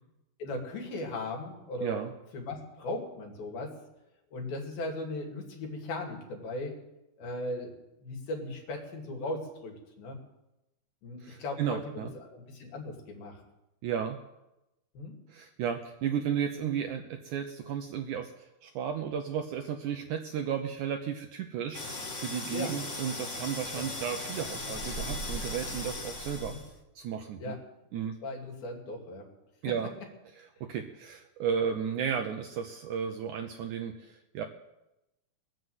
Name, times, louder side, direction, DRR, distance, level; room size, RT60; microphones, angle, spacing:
voice 1, 0.4-2.0 2.3-3.7 4.3-6.7 7.2-7.7 8.0-10.2 11.0-13.4 14.9-15.2 22.5-22.8 23.7-23.8 26.4-26.6 27.4-27.6 28.2-29.3 29.7-29.8 30.6-30.7, left 2 dB, 75° left, 1 dB, 4.2 m, -37 dB
voice 2, 1.8-2.1 11.2-12.1 13.8-14.2 15.3-26.6 27.0-27.6 27.9-28.2 29.6-29.9 30.4-34.4, right 8 dB, 75° right, 5 dB, 1.8 m, -34 dB
sound 1, 21.7-26.8, left 1 dB, 50° left, 0.8 m, -37 dB
20.5 x 7.8 x 7.9 m, 0.94 s
omnidirectional pair, 4.3 m